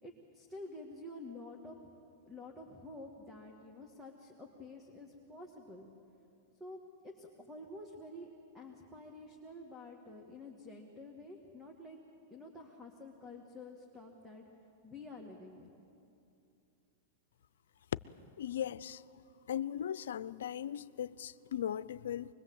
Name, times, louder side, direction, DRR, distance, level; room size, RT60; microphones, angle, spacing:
voice 1, 0.0-1.8 2.3-5.9 6.6-8.3 8.5-12.0 12.3-14.4 14.8-15.7, left 2 dB, ahead, 2.2 m, -49 dB
voice 2, 18.4-19.0 19.5-22.3, left 10 dB, 80° left, 0.5 m, -38 dB
24.5 x 21.5 x 8.0 m
hypercardioid pair, 125°, 0 cm